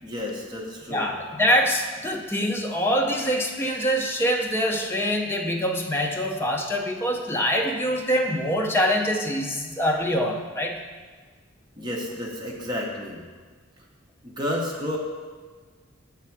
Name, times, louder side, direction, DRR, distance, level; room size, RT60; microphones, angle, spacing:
voice 1, 0.0-1.1 11.8-13.2 14.2-15.0, left 1 dB, 20° right, -2 dB, 0.9 m, -31 dB
voice 2, 0.9-10.8, equal, 10° left, 1 dB, 0.5 m, -24 dB
6.6 x 3.4 x 5.8 m, 1.5 s
head